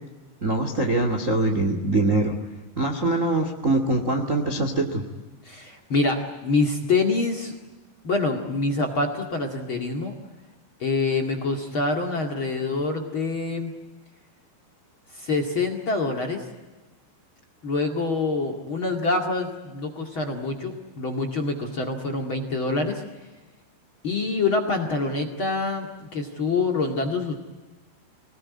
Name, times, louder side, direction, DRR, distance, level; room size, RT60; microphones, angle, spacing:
voice 1, 0.4-2.3 2.7-5.0, right 2 dB, 40° right, 4 dB, 1.1 m, -23 dB
voice 2, 5.5-7.6 8.0-10.1 10.8-13.7 15.1-16.4 17.6-23.0 24.0-27.3, left 3 dB, 40° left, 5 dB, 2.1 m, -26 dB
25.5 x 20.0 x 9.6 m, 1.2 s
omnidirectional pair, 5.1 m